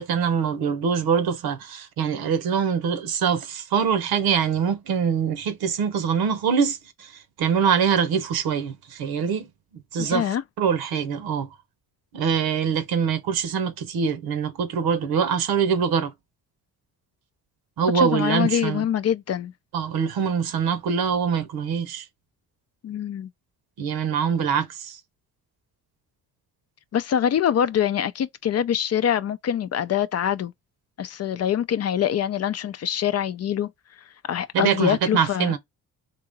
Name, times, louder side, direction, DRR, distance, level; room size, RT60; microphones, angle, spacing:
voice 1, 0.0-7.1 7.4-9.5 9.7-10.2 10.6-11.5 12.1-16.1 17.8-18.8 19.7-22.0 23.8-25.0 34.5-35.6, right 7 dB, 75° right, 0.9 m, -24 dB
voice 2, 10.0-10.4 17.9-19.5 22.8-23.3 26.9-30.5 31.0-33.7 34.2-35.5, left 9 dB, 45° left, 0.4 m, -24 dB
3.7 x 2.8 x 3.9 m
cardioid pair, 70°, 37 cm